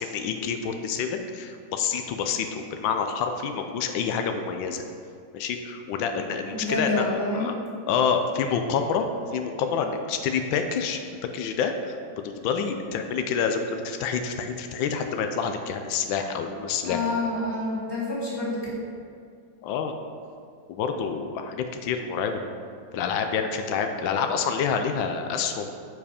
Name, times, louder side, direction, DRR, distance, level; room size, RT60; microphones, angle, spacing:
voice 1, 0.0-4.8 5.3-7.0 7.3-7.5 7.9-9.1 9.3-11.0 11.3-17.0 19.6-19.9 20.7-22.4 22.9-25.8, left 6 dB, 90° left, 6 dB, 1.4 m, -27 dB
voice 2, 6.5-7.5 16.8-18.7, left 2 dB, 15° left, -7 dB, 2.0 m, -28 dB
8.5 x 4.8 x 5.0 m, 2.3 s
omnidirectional pair, 2.1 m